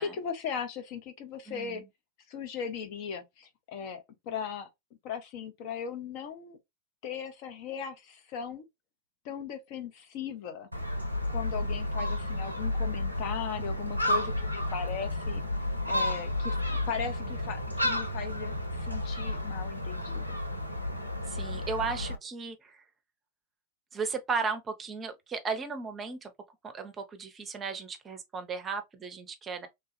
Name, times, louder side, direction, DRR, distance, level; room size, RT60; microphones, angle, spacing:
voice 1, 0.0-1.8 2.3-4.7 5.0-6.6 7.0-8.6 9.2-10.7 11.3-15.4 15.9-20.4, left 7 dB, 45° left, 0.7 m, -38 dB
voice 2, 1.5-1.9 21.3-22.8 23.9-26.3 26.6-29.7, right 5 dB, 20° right, 0.7 m, -35 dB
Gull seagull, 10.7-22.2, left 1 dB, 90° right, 0.4 m, -32 dB
3.2 x 2.3 x 2.6 m
figure-of-eight pair, 90°, 0 cm